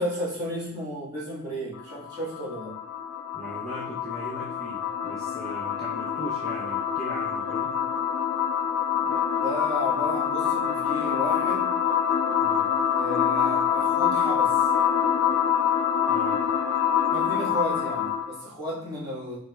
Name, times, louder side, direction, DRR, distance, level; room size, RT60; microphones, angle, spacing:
voice 1, 0.0-2.8 9.0-9.1 9.4-11.8 12.9-14.7 17.0-19.4, equal, 20° right, -9 dB, 1.5 m, -33 dB
sound 1, 1.7-18.4, left 8 dB, 65° left, 0.4 m, -26 dB
voice 2, 3.3-7.8 12.4-12.7 16.1-16.4, equal, ahead, -9 dB, 0.6 m, -39 dB
4.9 x 3.4 x 2.3 m, 0.78 s
head